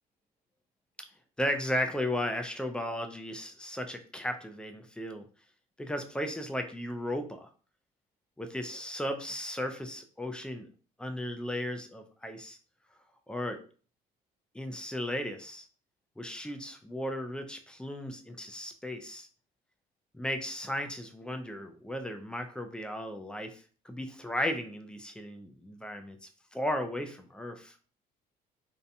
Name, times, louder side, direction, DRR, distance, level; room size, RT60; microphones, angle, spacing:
voice 1, 1.4-5.3 5.8-7.5 8.4-10.7 11.0-12.6 13.3-13.6 14.5-15.7 16.2-19.3 20.1-27.8, left 1 dB, 5° left, 5 dB, 0.3 m, -35 dB
2.7 x 2.1 x 2.5 m, 0.40 s
cardioid pair, 110°, 17 cm